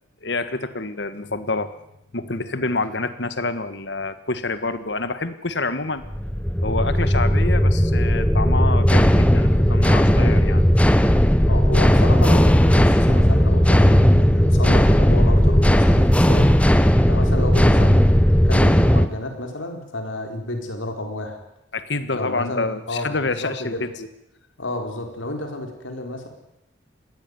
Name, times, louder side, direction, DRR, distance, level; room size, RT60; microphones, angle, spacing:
voice 1, 0.2-1.7 2.1-6.0 6.6-10.6 21.7-24.1, left 3 dB, 60° left, 12 dB, 1.6 m, -27 dB
sound 1, 6.0-19.1, equal, 5° left, 0.9 m, -16 dB
voice 2, 11.4-16.5 16.8-18.0 18.4-21.4 22.1-23.8 24.6-26.3, left 1 dB, 80° left, 5 dB, 4.3 m, -30 dB
20.5 x 16.0 x 9.6 m, 0.84 s
head